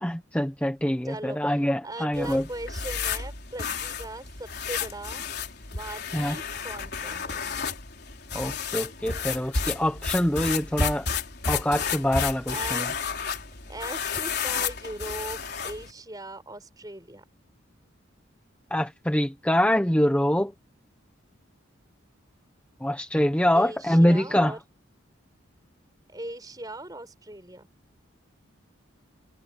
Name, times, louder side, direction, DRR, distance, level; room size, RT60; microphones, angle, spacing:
voice 1, 0.0-2.4 6.1-6.4 8.3-11.1 11.4-12.9 18.7-20.5 22.8-24.5, equal, 5° left, 1.0 m, -24 dB
voice 2, 1.0-5.3 5.7-7.6 12.5-12.9 13.7-17.2 23.5-24.6 26.1-27.7, right 1 dB, 20° right, 4.8 m, -39 dB
sound 1, 2.1-15.9, left 6 dB, 50° left, 4.5 m, -32 dB
head